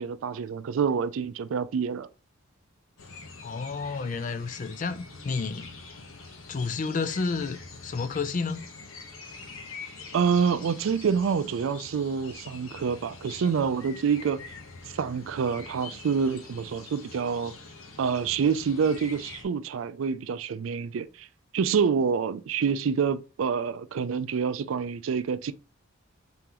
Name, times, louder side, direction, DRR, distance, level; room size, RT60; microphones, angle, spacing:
voice 1, 0.0-2.1 10.1-14.4 14.9-17.5 18.0-21.3 21.5-25.5, right 6 dB, 75° right, 0.4 m, -27 dB
sound 1, 3.0-19.4, left 4 dB, 85° left, 1.0 m, -45 dB
voice 2, 3.4-5.7 6.5-8.7, left 4 dB, 40° left, 0.4 m, -31 dB
3.8 x 3.8 x 2.9 m
head